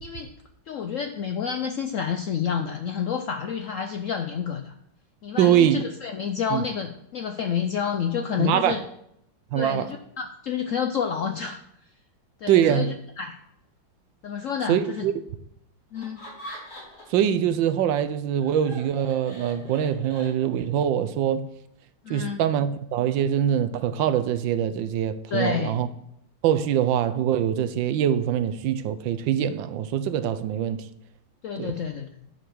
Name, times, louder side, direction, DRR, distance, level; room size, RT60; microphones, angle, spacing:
voice 1, 0.0-0.3 0.7-4.7 5.2-8.8 9.5-11.6 12.4-13.4 14.2-15.1 15.9-16.2 22.0-22.4 25.3-25.8 31.4-32.1, left 7 dB, 70° left, 0.7 m, -29 dB
voice 2, 5.4-5.8 6.5-6.6 8.4-8.7 9.5-9.9 12.5-12.9 14.7-15.1 17.1-21.4 22.1-25.9 26.4-30.8 31.6-31.7, right 10 dB, 85° right, 1.4 m, -23 dB
Laughter, 15.9-17.2 17.6-20.8, equal, 50° left, 3.8 m, -43 dB
10.0 x 5.4 x 6.4 m
omnidirectional pair, 2.0 m